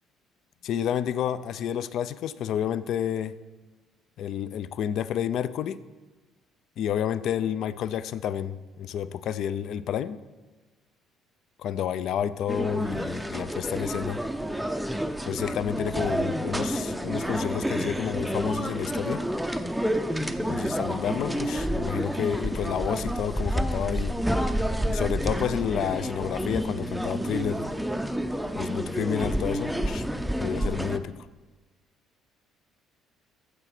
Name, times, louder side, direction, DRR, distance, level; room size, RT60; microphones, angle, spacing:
voice 1, 0.6-3.3 4.2-5.8 6.8-10.2 11.6-14.2 15.2-19.2 20.5-24.1 24.9-27.7 28.5-30.1 30.4-31.1, left 9 dB, 60° left, 15 dB, 0.4 m, -30 dB
sound 1, 12.5-31.0, equal, ahead, 0.5 m, -29 dB
14.5 x 4.9 x 5.9 m, 1.2 s
cardioid pair, 135°, 0 cm